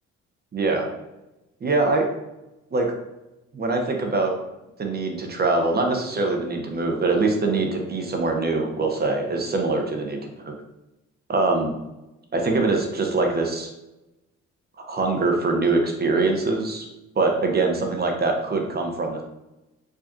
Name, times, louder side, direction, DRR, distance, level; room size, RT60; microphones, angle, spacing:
voice 1, 0.5-0.9 1.6-2.1 2.7-2.9 3.5-4.3 4.8-10.5 11.3-11.7 12.3-13.7 14.9-16.9 17.2-19.2, right 3 dB, 30° right, 2 dB, 0.8 m, -23 dB
4.8 x 2.4 x 2.6 m, 0.96 s
cardioid pair, 90°, 30 cm